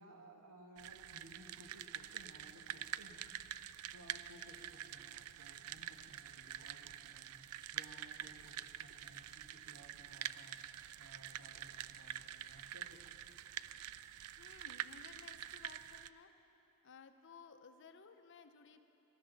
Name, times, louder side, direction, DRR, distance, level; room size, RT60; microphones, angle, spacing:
voice 1, 0.0-3.2 3.6-3.7 3.9-13.4, right 1 dB, 90° right, 2 dB, 1.4 m, -60 dB
sound 1, 0.8-16.1, right 11 dB, 75° right, 0.3 m, -47 dB
voice 2, 14.4-16.3 16.8-18.8, left 5 dB, 55° left, 8 dB, 0.6 m, -58 dB
19.0 x 12.0 x 4.0 m, 3.0 s
head